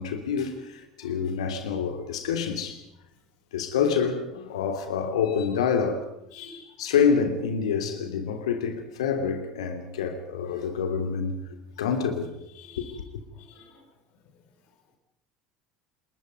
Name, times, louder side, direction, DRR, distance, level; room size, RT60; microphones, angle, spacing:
voice 1, 0.0-2.8 3.5-6.1 6.8-11.4 11.8-12.3 12.8-12.9, left 6 dB, 65° left, 2.9 m, -27 dB
voice 2, 6.3-6.7 12.6-12.9 13.3-13.9, left 6 dB, 50° left, 5.3 m, -47 dB
29.5 x 20.5 x 5.3 m
figure-of-eight pair, 70°, 3 cm